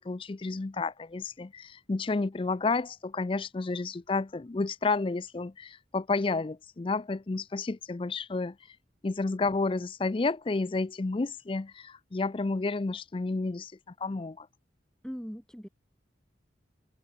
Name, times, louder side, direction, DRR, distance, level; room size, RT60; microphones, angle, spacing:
voice 1, 0.0-8.6 9.0-13.7 14.0-14.5, left 3 dB, 30° left, 0.4 m, -31 dB
voice 2, 15.0-15.7, equal, 5° left, 2.6 m, -40 dB
open air
head